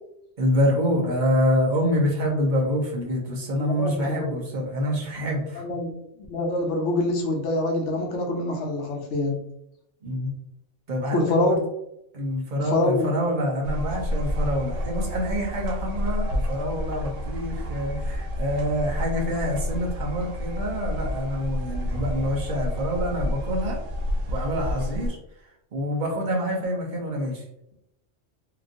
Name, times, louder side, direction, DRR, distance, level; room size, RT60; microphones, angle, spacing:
voice 1, 0.4-5.6 10.0-10.3 10.9-11.6 12.1-23.8 24.3-25.2 25.7-27.4, equal, 45° right, 0 dB, 0.8 m, -26 dB
voice 2, 3.6-4.3 5.5-6.0 6.3-9.4 11.1-11.5 12.6-13.1, left 2 dB, 70° left, 1 dB, 1.0 m, -25 dB
sound 1, 13.6-25.1, left 1 dB, 85° right, 1.0 m, -29 dB
3.0 x 2.5 x 2.5 m, 0.79 s
omnidirectional pair, 1.3 m